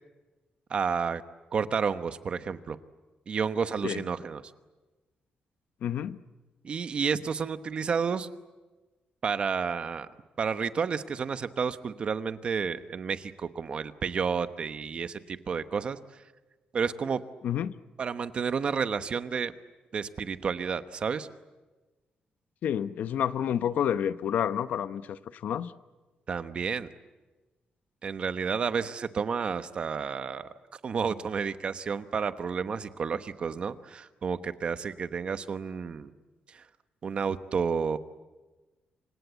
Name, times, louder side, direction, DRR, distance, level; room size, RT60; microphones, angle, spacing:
voice 1, 0.7-1.2 1.5-2.8 3.3-4.4 6.6-8.3 9.2-10.1 10.4-16.0 16.7-17.2 18.0-19.5 19.9-21.3 26.3-26.9 28.0-30.5 30.8-36.1 36.5-36.6 37.0-38.0, right 6 dB, 40° right, 12 dB, 1.0 m, -31 dB
voice 2, 5.8-6.2 17.4-17.7 22.6-25.7, left 9 dB, 70° left, 13 dB, 0.8 m, -29 dB
28.0 x 25.5 x 8.2 m, 1.2 s
wide cardioid pair, 170°, 3 cm